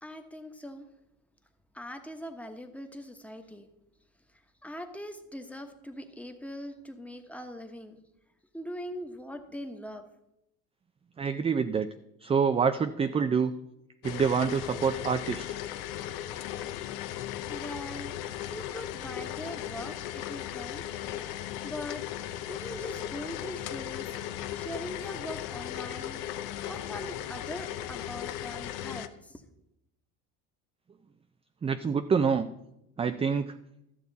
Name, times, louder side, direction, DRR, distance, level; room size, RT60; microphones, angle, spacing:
voice 1, 0.0-0.9 1.7-3.7 4.3-8.0 8.5-10.0 17.5-18.2 18.5-20.9 21.6-22.1 22.5-24.2 24.5-26.2 26.7-29.4, equal, 5° left, 5 dB, 1.1 m, -41 dB
voice 2, 11.2-11.9 12.2-13.5 14.0-15.6 31.6-32.5 33.0-33.5, right 6 dB, 15° right, 9 dB, 0.4 m, -26 dB
sound 1, 14.0-29.1, left 12 dB, 70° left, 0.8 m, -37 dB
13.5 x 6.8 x 4.0 m, 0.85 s
supercardioid pair, 95°, 37 cm